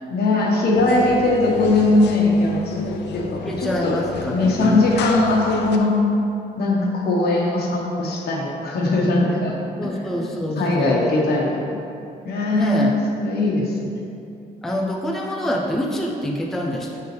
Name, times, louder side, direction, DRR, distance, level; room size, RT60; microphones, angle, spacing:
voice 1, 0.1-4.0 4.3-5.9 6.6-9.6 10.2-10.3 10.6-11.8 12.2-14.0, left 2 dB, 70° left, -2 dB, 1.2 m, -20 dB
sound 1, 0.7-5.8, left 5 dB, 90° left, 0.6 m, -33 dB
voice 2, 3.5-4.9 9.8-11.1 12.5-12.9 14.6-17.0, equal, ahead, -1 dB, 0.4 m, -26 dB
6.7 x 6.6 x 3.4 m, 2.7 s
wide cardioid pair, 175°, 17 cm